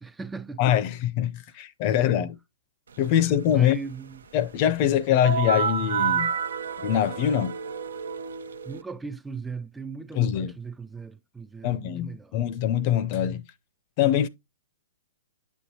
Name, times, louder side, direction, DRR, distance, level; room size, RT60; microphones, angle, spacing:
voice 1, 0.0-0.6 1.9-2.2 3.5-4.2 8.6-12.4, right 5 dB, 10° right, 0.4 m, -38 dB
voice 2, 0.6-2.4 3.0-3.8 4.3-6.3 6.8-7.5 10.1-10.5 11.6-13.4 14.0-14.3, left 10 dB, 40° left, 0.6 m, -23 dB
sound 1, 5.2-8.8, right 6 dB, 90° right, 0.8 m, -29 dB
8.4 x 6.3 x 2.8 m
hypercardioid pair, 140°, 0 cm